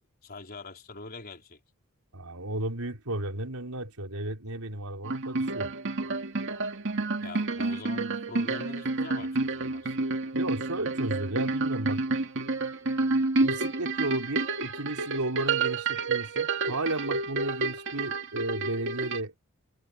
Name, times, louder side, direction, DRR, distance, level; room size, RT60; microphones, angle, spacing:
voice 1, 0.2-1.6 7.2-10.0, left 3 dB, 45° left, 4.5 m, -43 dB
voice 2, 2.1-5.7 10.3-12.0 13.4-19.3, right 2 dB, 85° right, 4.3 m, -34 dB
sound 1, 5.0-19.2, right 3 dB, 60° right, 2.1 m, -29 dB
head